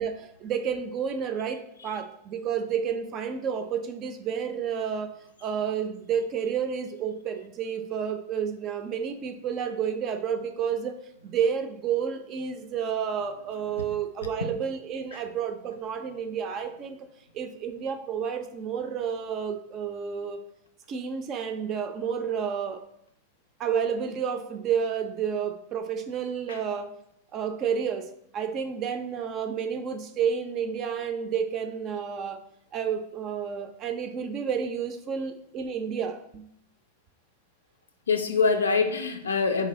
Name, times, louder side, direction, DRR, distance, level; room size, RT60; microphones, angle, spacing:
voice 1, 0.0-5.1 5.4-11.0 11.2-17.1 17.3-20.4 20.9-22.8 23.6-26.9 27.3-32.4 32.7-36.4, right 7 dB, 35° right, 7 dB, 0.5 m, -30 dB
voice 2, 38.1-39.7, left 4 dB, 70° left, 8 dB, 0.4 m, -25 dB
4.5 x 3.3 x 3.6 m, 0.74 s
figure-of-eight pair, 90°, 0 cm